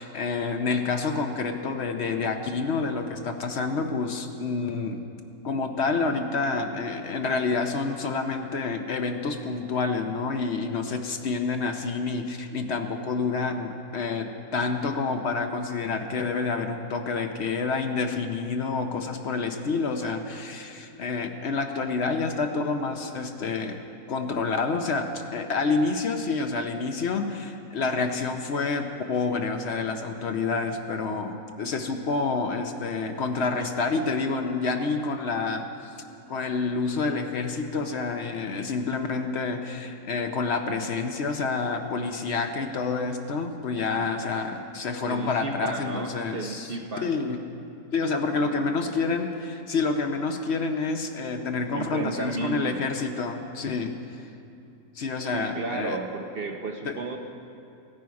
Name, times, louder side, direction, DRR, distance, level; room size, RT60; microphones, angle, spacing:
voice 1, 0.0-5.1 5.4-23.8 24.1-35.7 36.3-47.4 47.9-54.3 54.9-56.0 56.9-57.0, left 4 dB, 55° left, 5 dB, 0.8 m, -28 dB
voice 2, 45.1-47.1 48.3-48.8 51.7-52.8 55.2-57.2, right 3 dB, 50° right, 3 dB, 0.8 m, -33 dB
15.0 x 10.5 x 4.7 m, 2.6 s
omnidirectional pair, 1.7 m